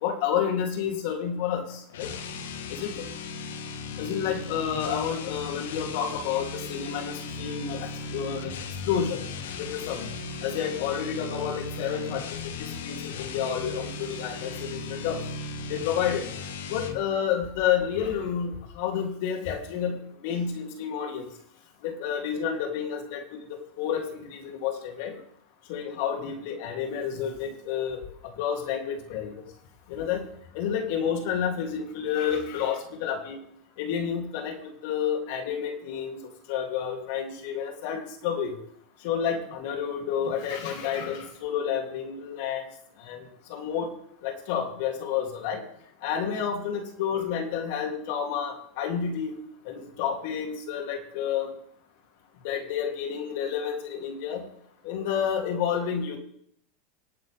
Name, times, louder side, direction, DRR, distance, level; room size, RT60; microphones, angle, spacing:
voice 1, 0.0-2.1 2.7-3.1 4.0-8.5 8.8-9.2 9.6-10.1 10.4-15.2 15.7-16.3 16.7-20.0 20.2-21.3 21.8-25.2 25.7-28.0 28.4-29.4 29.9-30.3 30.5-33.4 33.8-36.2 36.5-38.6 39.0-42.6 43.0-43.9 44.2-45.6 46.0-51.5 52.4-54.4 54.8-56.2, left 8 dB, 65° left, 3 dB, 3.1 m, -30 dB
sound 1, 1.9-17.0, left 4 dB, 85° left, 1.6 m, -37 dB
25.0 x 9.2 x 3.6 m, 0.68 s
supercardioid pair, 115°, 0 cm